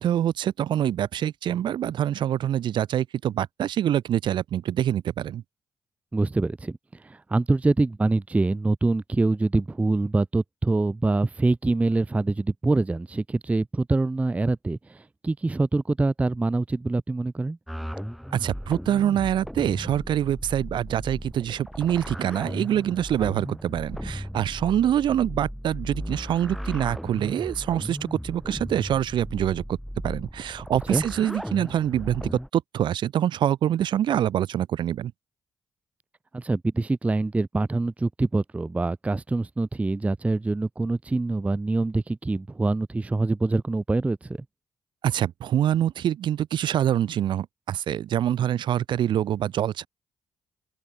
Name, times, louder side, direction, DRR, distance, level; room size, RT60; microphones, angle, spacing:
voice 1, 0.0-5.4 18.3-29.8 30.0-35.1 45.0-49.9, right 10 dB, 70° right, 0.8 m, -25 dB
voice 2, 6.1-17.6 30.9-31.0 36.3-44.4, right 2 dB, 15° right, 0.4 m, -25 dB
sound 1, 17.7-32.5, equal, ahead, 4.3 m, -36 dB
open air
supercardioid pair, 50°, 8 cm